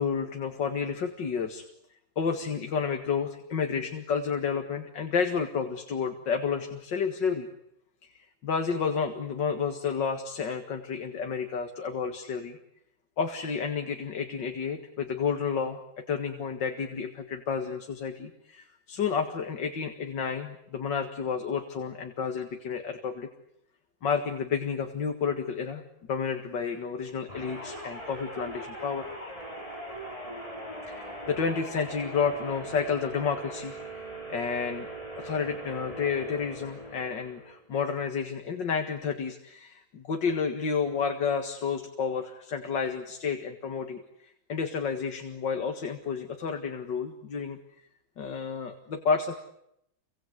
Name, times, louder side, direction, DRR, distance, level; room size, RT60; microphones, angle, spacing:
voice 1, 0.0-1.6 2.2-7.5 8.1-12.6 13.2-15.8 16.1-23.3 24.0-25.8 26.1-29.1 30.9-34.9 35.2-47.6 48.2-49.4, left 6 dB, 65° left, 5 dB, 2.5 m, -31 dB
sound 1, 27.3-37.6, right 1 dB, 15° left, 6.6 m, -40 dB
29.5 x 25.0 x 8.1 m, 0.79 s
omnidirectional pair, 2.1 m